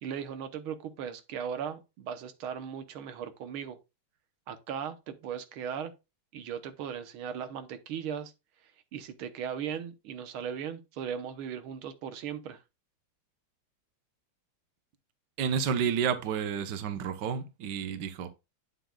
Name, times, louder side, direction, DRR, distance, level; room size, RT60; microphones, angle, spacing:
voice 1, 0.0-3.8 4.5-5.9 6.3-8.3 8.9-12.6, right 8 dB, 85° right, 1.8 m, -37 dB
voice 2, 15.4-18.3, right 7 dB, 60° right, 1.6 m, -30 dB
9.2 x 7.7 x 2.3 m
omnidirectional pair, 2.3 m